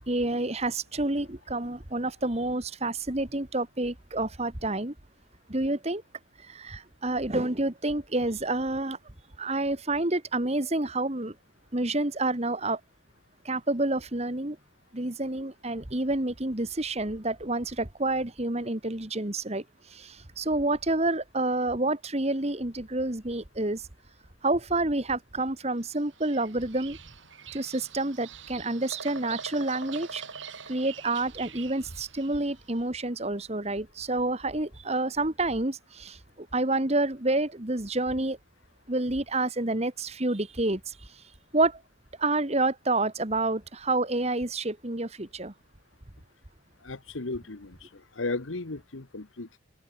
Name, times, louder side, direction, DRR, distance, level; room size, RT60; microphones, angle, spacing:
voice 1, 0.1-4.9 5.5-6.0 6.5-9.0 9.4-11.3 11.7-12.8 13.5-14.6 14.9-19.6 19.9-23.8 24.4-27.0 27.5-30.2 30.7-38.4 38.9-40.8 41.5-41.8 42.2-45.5, right 2 dB, 35° right, 1.8 m, -28 dB
Bird vocalization bird call bird song, 25.9-32.6, right 6 dB, 75° right, 3.8 m, -43 dB
voice 2, 46.8-47.8 48.2-49.6, left 3 dB, 85° left, 1.4 m, -35 dB
head